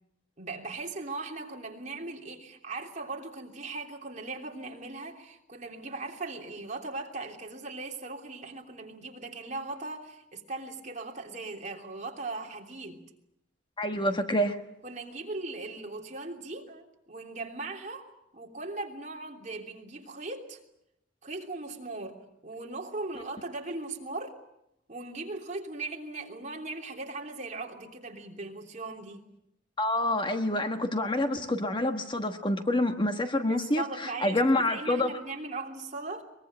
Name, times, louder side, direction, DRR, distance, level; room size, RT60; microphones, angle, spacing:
voice 1, 0.4-13.0 14.8-20.6 21.2-24.4 24.9-29.2 33.5-36.2, right 3 dB, 40° right, 1 dB, 3.2 m, -39 dB
voice 2, 13.8-14.6 29.8-35.1, left 1 dB, 25° left, 6 dB, 1.3 m, -27 dB
23.0 x 21.5 x 8.8 m, 0.83 s
head